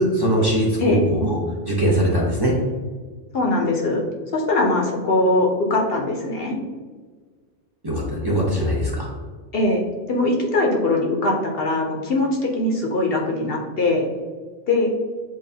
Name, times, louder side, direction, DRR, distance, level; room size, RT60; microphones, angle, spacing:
voice 1, 0.0-1.4 1.6-2.5 7.8-9.1, right 1 dB, 25° right, -5 dB, 0.8 m, -21 dB
voice 2, 3.3-4.0 4.3-6.5 9.5-9.8 10.1-14.1 14.7-14.9, left 2 dB, 60° left, 0 dB, 0.9 m, -21 dB
7.5 x 2.5 x 2.7 m, 1.5 s
omnidirectional pair, 1.2 m